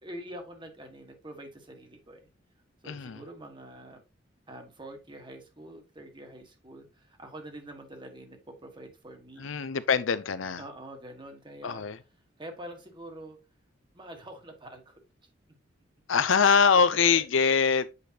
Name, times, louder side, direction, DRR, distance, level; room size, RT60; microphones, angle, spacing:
voice 1, 0.0-2.3 2.8-4.0 4.5-9.5 10.6-11.8 12.4-13.4 13.9-15.0 16.7-17.3, right 1 dB, 25° right, 1.5 m, -45 dB
voice 2, 2.9-3.2 9.4-10.6 11.6-12.0 16.1-17.9, left 6 dB, 80° left, 0.6 m, -23 dB
8.1 x 5.1 x 2.9 m
head